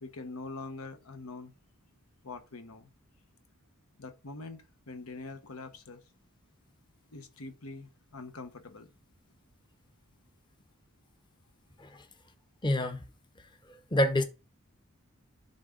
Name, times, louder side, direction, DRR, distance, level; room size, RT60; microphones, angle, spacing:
voice 1, 0.0-1.5 2.2-2.9 4.0-6.0 7.1-8.9, left 3 dB, 85° left, 1.1 m, -44 dB
voice 2, 12.6-13.0 13.9-14.2, left 1 dB, 20° left, 0.8 m, -27 dB
10.5 x 3.8 x 3.8 m
head